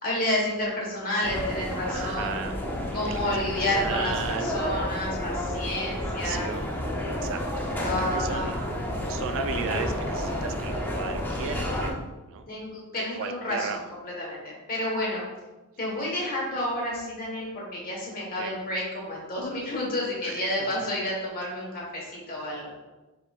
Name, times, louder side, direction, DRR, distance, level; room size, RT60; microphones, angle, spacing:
voice 1, 0.0-2.4 2.9-6.5 7.8-8.6 12.5-15.2 15.8-22.7, left 1 dB, 40° left, -3 dB, 1.3 m, -30 dB
sound 1, 1.2-11.9, left 1 dB, 10° left, 0.5 m, -30 dB
voice 2, 1.9-2.5 3.1-4.5 5.8-7.4 8.0-8.6 9.0-12.0 12.3-12.5 13.2-13.8 18.4-18.5 20.2-20.8, right 6 dB, 60° right, 8 dB, 0.3 m, -36 dB
4.7 x 3.9 x 2.4 m, 1.1 s
head